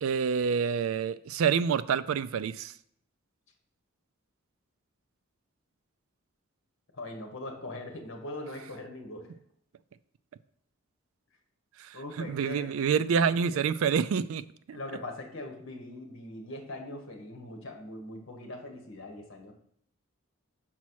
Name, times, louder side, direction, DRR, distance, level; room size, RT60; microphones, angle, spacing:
voice 1, 0.0-2.7 11.8-14.8, right 6 dB, 75° right, 14 dB, 0.3 m, -27 dB
voice 2, 6.9-9.3 11.9-12.7 13.3-13.6 14.7-19.5, left 1 dB, 60° left, 3 dB, 1.3 m, -41 dB
6.0 x 4.2 x 6.2 m, 0.69 s
head